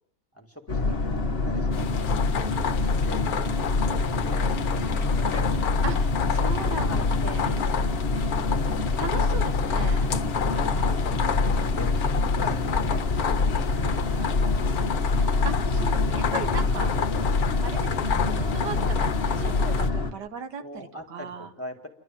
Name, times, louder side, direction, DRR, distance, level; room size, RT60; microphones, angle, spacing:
voice 1, 0.3-2.1 3.0-3.5 3.9-5.8 6.8-7.4 10.4-11.3 11.7-14.9 15.8-15.9 20.6-21.9, left 1 dB, 10° left, 2 dB, 2.0 m, -42 dB
Boat Water vehicle, 0.7-20.1, left 3 dB, 35° left, 1.5 m, -25 dB
sound 1, 1.7-19.9, left 8 dB, 65° left, 1.4 m, -32 dB
voice 2, 5.8-7.8 9.0-10.1 15.4-17.0 17.6-21.5, right 6 dB, 80° right, 8 dB, 1.8 m, -37 dB
29.5 x 12.0 x 7.5 m, 0.71 s
omnidirectional pair, 1.8 m